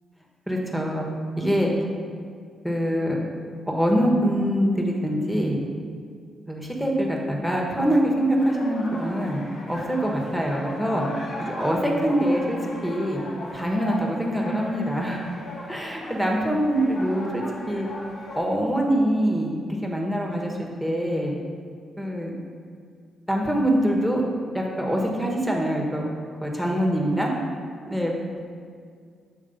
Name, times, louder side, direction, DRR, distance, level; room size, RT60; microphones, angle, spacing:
voice 1, 0.5-1.1 1.4-1.7 2.6-3.2 3.7-5.6 6.5-9.4 9.7-11.1 11.4-13.2 13.5-15.3 15.7-17.9 18.3-20.5 20.8-21.3 22.0-22.3 23.3-24.2 24.5-26.0 26.4-27.3 27.9-28.4, equal, 5° left, -1 dB, 1.3 m, -24 dB
sound 1, 8.4-18.4, left 1 dB, 65° left, 1.1 m, -38 dB
7.0 x 3.1 x 5.2 m, 2.1 s
supercardioid pair, 55°, 0 cm